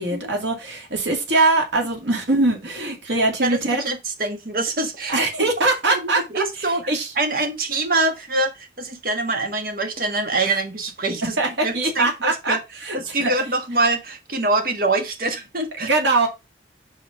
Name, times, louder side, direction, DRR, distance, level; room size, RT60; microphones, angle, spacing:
voice 1, 0.0-3.8 5.1-6.4 6.9-7.1 11.4-12.6 12.8-13.3 15.8-16.3, right 2 dB, 85° right, 2.4 m, -22 dB
voice 2, 3.4-5.2 5.9-12.6 12.9-15.9, right 2 dB, 50° right, 1.5 m, -25 dB
5.1 x 4.8 x 5.4 m
head